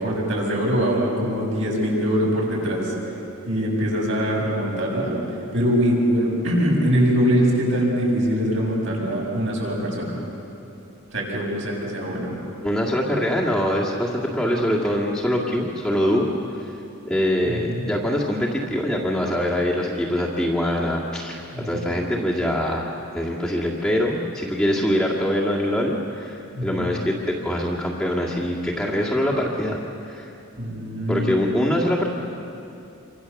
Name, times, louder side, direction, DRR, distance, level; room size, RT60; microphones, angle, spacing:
voice 1, 0.0-2.9 3.5-5.2 5.5-10.2 11.1-12.3 17.5-17.9 21.5-21.8 26.5-26.9 30.6-31.3, equal, 60° right, -3 dB, 7.0 m, -23 dB
voice 2, 12.6-16.3 16.6-16.7 17.1-29.8 30.0-30.3 31.1-32.1, equal, 5° left, -5 dB, 1.9 m, -23 dB
27.5 x 25.0 x 7.1 m, 2.9 s
head